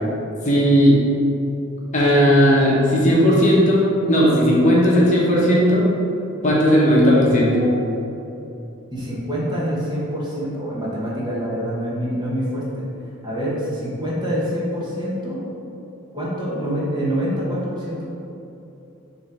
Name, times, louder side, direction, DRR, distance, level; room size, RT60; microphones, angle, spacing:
voice 1, 0.4-1.0 1.9-5.9 6.4-7.7, equal, 35° left, -5 dB, 0.9 m, -16 dB
voice 2, 8.9-12.8 13.2-15.4 16.1-18.0, equal, 20° right, -7 dB, 1.4 m, -26 dB
6.3 x 3.2 x 5.4 m, 2.9 s
head